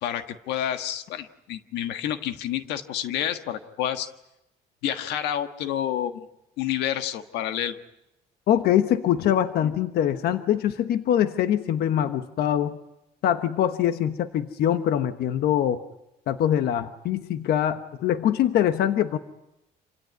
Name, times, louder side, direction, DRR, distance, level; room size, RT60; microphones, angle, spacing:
voice 1, 0.0-4.1 4.8-6.3 6.6-7.8, left 10 dB, 90° left, 8 dB, 1.5 m, -29 dB
voice 2, 8.5-12.8 13.2-15.8 16.3-19.2, left 10 dB, 70° left, 9 dB, 1.2 m, -23 dB
27.0 x 17.0 x 9.6 m, 0.90 s
cardioid pair, 110°, 17 cm